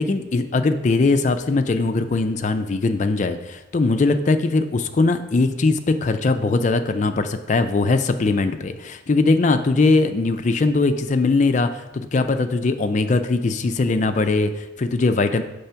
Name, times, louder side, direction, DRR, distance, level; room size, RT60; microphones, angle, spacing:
voice 1, 0.0-15.4, left 3 dB, 40° left, 9 dB, 0.3 m, -20 dB
6.9 x 3.4 x 5.6 m, 1.0 s
head